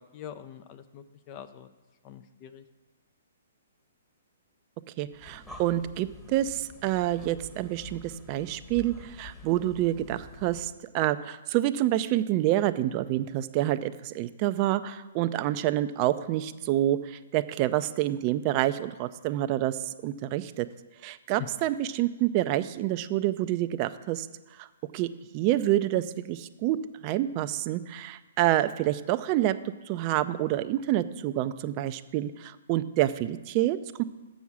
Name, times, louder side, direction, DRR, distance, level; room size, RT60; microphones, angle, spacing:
voice 1, 0.1-1.7 2.0-2.6 21.4-21.5, left 11 dB, 35° left, 10 dB, 0.5 m, -43 dB
voice 2, 5.0-20.7 21.0-24.3 24.6-24.7 24.9-25.1 25.3-26.8 27.0-29.5 29.9-34.0, right 14 dB, 35° right, 12 dB, 0.4 m, -27 dB
Breathing, 5.1-10.8, left 3 dB, 5° left, 1.1 m, -48 dB
7.1 x 6.2 x 7.1 m, 1.2 s
hypercardioid pair, 130°, 0 cm